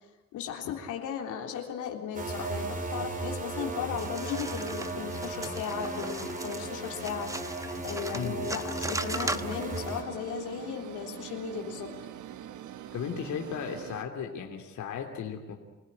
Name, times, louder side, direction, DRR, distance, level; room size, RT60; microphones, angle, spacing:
voice 1, 0.3-7.6 7.8-12.1, left 8 dB, 90° left, 1 dB, 3.6 m, -36 dB
sound 1, 2.1-10.0, right 2 dB, 25° right, 4.3 m, -36 dB
sound 2, 4.0-9.9, right 2 dB, 10° right, 1.2 m, -38 dB
sound 3, 8.9-14.0, right 11 dB, 80° right, 1.3 m, -44 dB
voice 2, 12.9-15.5, left 7 dB, 70° left, 3 dB, 3.1 m, -35 dB
27.0 x 17.0 x 10.0 m, 1.1 s
cardioid pair, 90°, 30 cm